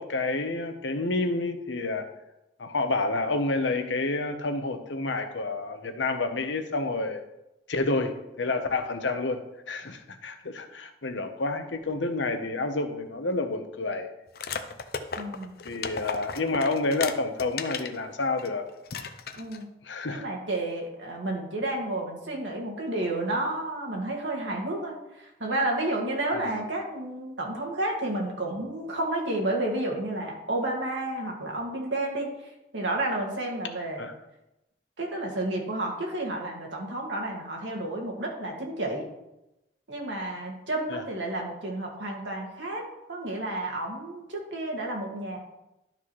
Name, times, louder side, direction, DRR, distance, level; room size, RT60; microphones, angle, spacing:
voice 1, 0.0-2.1 2.6-7.2 7.7-9.4 9.7-14.1 15.6-18.6 19.8-20.2 26.4-26.5 34.0-34.1 40.9-41.0, left 3 dB, 85° left, 7 dB, 0.9 m, -29 dB
sound 1, 14.3-18.0 18.4-18.5 18.9-19.6, left 5 dB, 55° left, 0.6 m, -34 dB
voice 2, 15.2-15.5 19.4-19.7 20.1-34.1 35.0-39.0 39.9-45.4, right 1 dB, 85° right, 0 dB, 2.0 m, -31 dB
12.0 x 6.0 x 3.2 m, 0.92 s
head